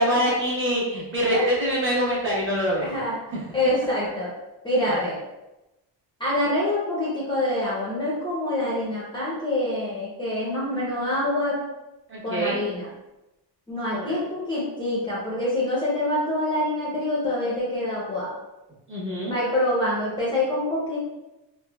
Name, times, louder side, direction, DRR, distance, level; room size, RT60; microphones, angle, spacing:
voice 1, 0.0-2.9 12.1-12.6 13.9-14.1 18.9-19.3, equal, 30° right, -7 dB, 1.0 m, -24 dB
voice 2, 2.8-3.2 3.5-4.3 4.6-5.2 6.2-11.6 12.2-12.9 13.7-18.3 19.3-21.0, left 1 dB, 10° left, -8 dB, 0.6 m, -26 dB
3.5 x 2.1 x 2.2 m, 0.98 s
cardioid pair, 145°, 44 cm